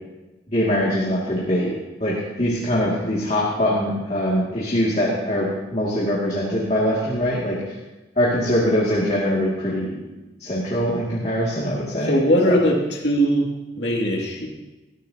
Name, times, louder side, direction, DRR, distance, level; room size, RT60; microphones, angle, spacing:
voice 1, 0.5-1.7 2.0-7.8 8.2-9.9 10.4-12.2 12.5-12.6, equal, 35° left, -6 dB, 2.3 m, -22 dB
voice 2, 12.0-13.5 13.8-14.5, equal, 65° left, -1 dB, 2.5 m, -20 dB
19.5 x 13.5 x 2.9 m, 1.1 s
head